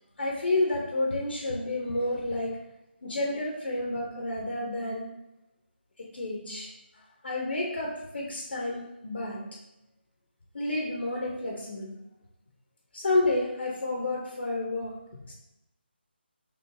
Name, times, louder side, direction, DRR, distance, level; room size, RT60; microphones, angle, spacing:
voice 1, 0.2-2.6 3.0-5.1 6.0-6.7 7.2-9.4 10.5-11.9 12.9-15.3, left 2 dB, 65° left, -1 dB, 0.8 m, -30 dB
4.6 x 3.2 x 2.6 m, 0.93 s
figure-of-eight pair, 170°, 6 cm